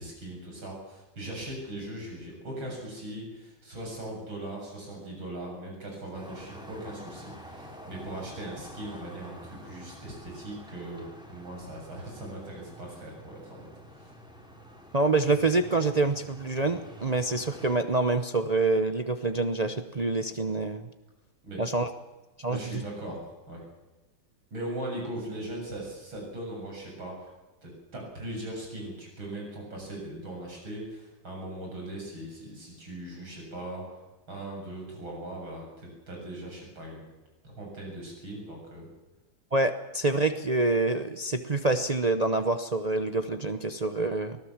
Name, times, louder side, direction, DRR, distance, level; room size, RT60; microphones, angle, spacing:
voice 1, 0.0-13.7 14.0-14.1 21.4-21.6 22.5-23.6 24.5-27.3 27.6-33.9 34.3-37.0 37.4-38.9, right 1 dB, 90° right, 0 dB, 8.3 m, -39 dB
sound 1, 6.1-17.8, equal, ahead, 3.1 m, -48 dB
voice 2, 14.9-20.9 21.6-21.9 22.4-22.8 39.5-44.4, right 3 dB, 55° right, 7 dB, 0.4 m, -26 dB
24.0 x 17.5 x 7.4 m, 1.1 s
omnidirectional pair, 2.2 m